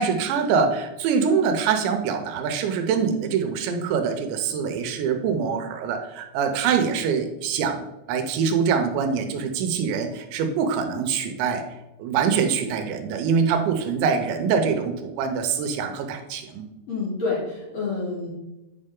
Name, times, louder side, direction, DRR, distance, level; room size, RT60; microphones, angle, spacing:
voice 1, 0.0-11.6 12.0-16.7, right 6 dB, 80° right, 6 dB, 3.1 m, -24 dB
voice 2, 16.9-18.3, left 4 dB, 35° left, -7 dB, 3.3 m, -28 dB
9.6 x 5.4 x 3.7 m, 0.99 s
omnidirectional pair, 5.2 m